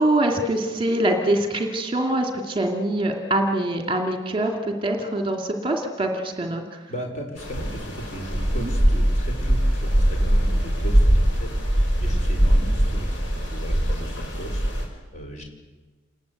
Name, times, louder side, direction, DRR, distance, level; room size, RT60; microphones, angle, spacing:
voice 1, 0.0-6.8 8.6-8.7, right 1 dB, 25° right, 3 dB, 2.4 m, -24 dB
voice 2, 6.9-15.4, right 1 dB, 35° left, 2 dB, 5.1 m, -37 dB
sound 1, 7.4-14.8, equal, 70° left, 6.1 m, -21 dB
28.0 x 20.5 x 8.3 m, 1.3 s
head